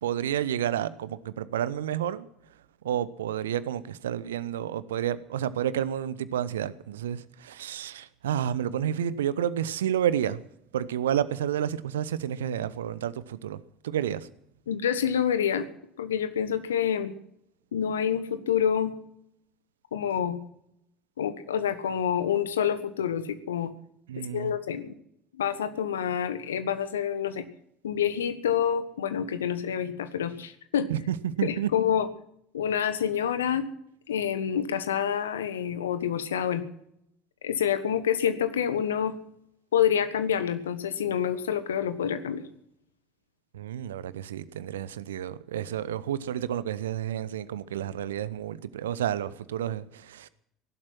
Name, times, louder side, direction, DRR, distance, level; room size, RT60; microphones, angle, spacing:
voice 1, 0.0-2.3 2.8-10.4 10.7-14.3 24.1-24.5 30.9-31.7 43.5-50.3, right 10 dB, 70° right, 17 dB, 0.8 m, -30 dB
voice 2, 14.7-15.7 16.0-17.1 17.7-18.9 19.9-20.4 21.2-23.7 24.3-24.9 25.4-27.4 27.8-30.9 31.4-32.1 32.5-33.6 34.1-36.6 37.4-39.1 39.7-42.4, left 8 dB, 75° left, 12 dB, 1.3 m, -27 dB
18.5 x 12.0 x 6.1 m, 0.75 s
figure-of-eight pair, 65°, 0 cm